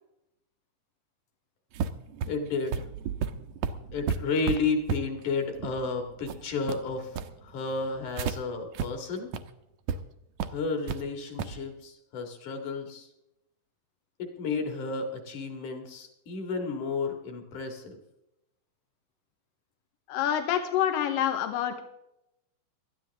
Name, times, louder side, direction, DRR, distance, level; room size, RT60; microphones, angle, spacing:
sound 1, 1.7-8.4 8.8-8.9 9.2-9.4 9.9-10.0 10.4-11.0 11.4-11.6, right 6 dB, 75° right, 1.8 m, -33 dB
voice 1, 2.3-2.8 3.9-7.1 7.4-9.3 10.5-13.1 14.2-18.0, left 4 dB, 65° left, 5 dB, 3.4 m, -32 dB
voice 2, 20.1-21.8, left 10 dB, 85° left, 7 dB, 2.7 m, -27 dB
19.5 x 13.0 x 3.5 m, 0.84 s
omnidirectional pair, 3.9 m